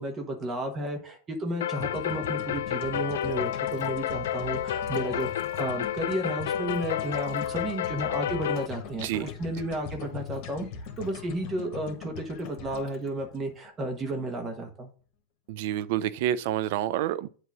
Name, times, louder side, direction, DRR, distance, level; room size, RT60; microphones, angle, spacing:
voice 1, 0.0-5.3 5.6-10.7 11.0-14.9, right 1 dB, 25° right, 1.2 m, -32 dB
sound 1, 1.6-8.7, left 10 dB, 85° left, 0.4 m, -31 dB
sound 2, 1.8-14.0, left 6 dB, 55° left, 1.6 m, -42 dB
Liquid, 3.1-4.2 4.6-6.2 6.6-7.9 8.6-9.3 9.9-11.6 12.4-13.1, left 6 dB, 35° left, 2.2 m, -51 dB
voice 2, 15.5-17.3, right 12 dB, 65° right, 0.5 m, -28 dB
8.2 x 3.0 x 6.0 m
supercardioid pair, 125°, 0 cm